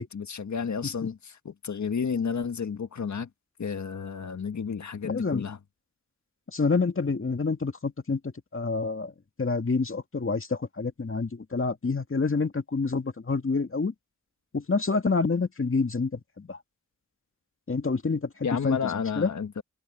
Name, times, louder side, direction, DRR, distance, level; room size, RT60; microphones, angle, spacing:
voice 1, 0.0-3.3 3.6-5.6 18.4-19.6, left 6 dB, 65° left, 1.6 m, -31 dB
voice 2, 5.0-5.5 6.5-9.1 9.4-13.9 14.5-16.6 17.7-19.3, left 4 dB, 40° left, 2.3 m, -28 dB
cardioid pair, 45°, 31 cm